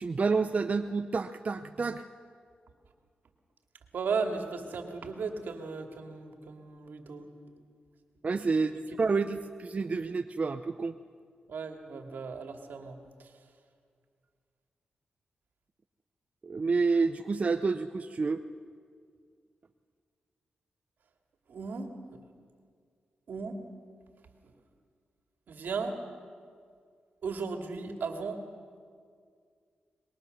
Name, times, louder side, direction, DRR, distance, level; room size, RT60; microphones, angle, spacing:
voice 1, 0.0-2.0 8.2-10.9 16.4-18.4, right 4 dB, 45° right, 8 dB, 0.7 m, -29 dB
voice 2, 3.9-7.3 8.7-8.8 11.5-13.3 21.5-22.2 23.3-23.6 24.4-24.5 25.5-26.0 27.2-28.4, right 4 dB, 80° right, 4 dB, 2.4 m, -36 dB
24.5 x 21.5 x 6.7 m, 2.1 s
cardioid pair, 65°, 3 cm